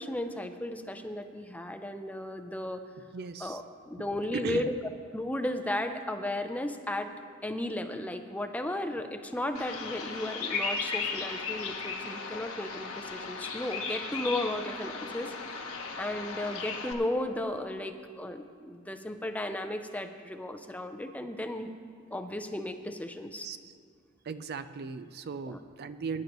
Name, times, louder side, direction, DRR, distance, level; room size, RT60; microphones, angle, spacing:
voice 1, 0.0-2.8 3.4-4.7 5.1-7.1 7.4-15.7 16.0-21.7 22.1-23.5 25.5-25.6, left 1 dB, 5° left, 7 dB, 0.5 m, -35 dB
voice 2, 3.1-3.6 4.0-4.1 4.3-4.7 23.4-23.7 24.2-26.2, right 5 dB, 50° right, 12 dB, 0.4 m, -37 dB
Bird vocalization bird call bird song, 9.5-16.9, left 4 dB, 80° left, 1.1 m, -36 dB
20.0 x 10.5 x 3.0 m, 2.3 s
head